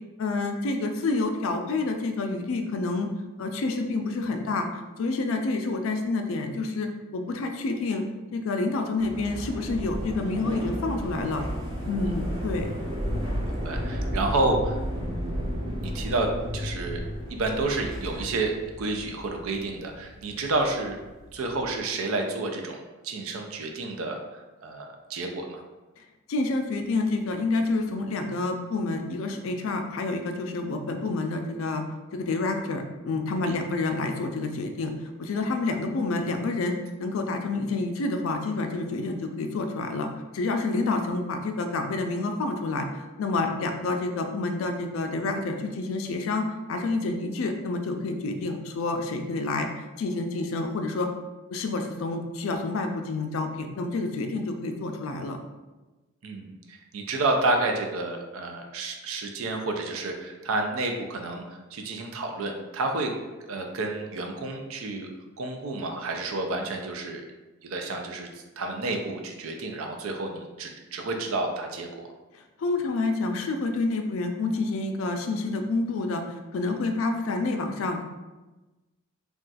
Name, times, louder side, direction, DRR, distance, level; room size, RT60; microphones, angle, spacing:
voice 1, 0.2-3.1 3.4-4.7 5.0-8.1 8.3-11.4 11.9-12.7 26.3-31.8 32.1-34.9 35.2-51.1 51.5-55.4 72.6-76.2 76.5-78.0, left 3 dB, 70° left, 5 dB, 0.4 m, -28 dB
sound 1, 9.0-21.7, equal, 25° right, 0.7 m, -33 dB
voice 2, 13.6-15.4 15.8-17.0 17.3-21.0 21.3-25.6 33.4-33.6 56.2-61.4 61.7-63.1 63.4-65.1 65.4-67.2 67.6-72.1 76.7-76.8, right 2 dB, 75° right, 3 dB, 0.4 m, -30 dB
2.4 x 2.3 x 3.9 m, 1.1 s
head